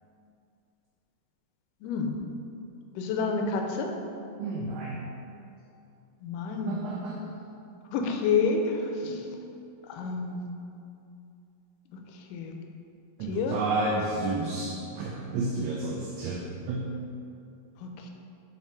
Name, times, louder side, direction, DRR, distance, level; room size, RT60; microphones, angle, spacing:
voice 1, 1.8-2.2 3.0-3.9 6.2-6.9 7.9-9.3 9.9-10.5 11.9-12.0 12.3-12.5 13.3-13.6 17.8-18.1, left 4 dB, 80° left, 2 dB, 2.2 m, -29 dB
voice 2, 4.4-5.1 6.5-7.3 9.0-9.3 13.2-16.9, right 2 dB, 80° right, -1 dB, 1.7 m, -31 dB
5.8 x 4.3 x 4.4 m, 2.6 s
omnidirectional pair, 3.9 m